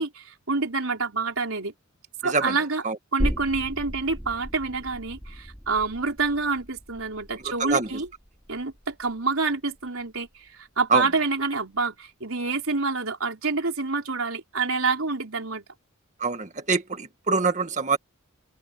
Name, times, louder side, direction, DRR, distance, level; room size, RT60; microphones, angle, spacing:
voice 1, 0.0-1.7 2.2-2.8 3.1-8.1 8.5-15.6, right 4 dB, 75° right, 4.2 m, -27 dB
voice 2, 2.2-2.5 2.8-3.0 7.6-7.9 10.9-11.0 16.2-18.0, right 4 dB, 35° right, 1.9 m, -24 dB
sound 1, 3.2-10.5 10.8-10.9, equal, ahead, 3.3 m, -36 dB
open air
head